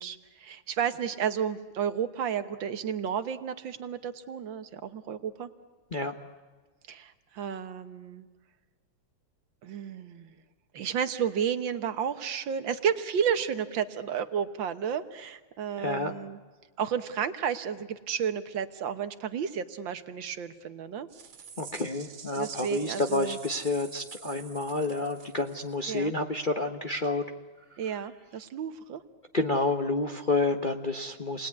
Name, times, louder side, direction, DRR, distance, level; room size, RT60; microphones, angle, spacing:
voice 1, 0.0-5.5 6.9-8.3 9.6-10.3 10.7-16.4 16.8-21.1 22.3-23.4 25.9-26.1 27.8-29.0, right 8 dB, 65° right, 10 dB, 1.8 m, -32 dB
voice 2, 15.8-16.1 21.6-27.2 29.3-31.5, left 2 dB, 35° left, 4 dB, 0.9 m, -29 dB
sound 1, 21.1-25.9, right 6 dB, 85° right, 2.6 m, -47 dB
28.5 x 20.0 x 9.6 m, 1.4 s
omnidirectional pair, 2.3 m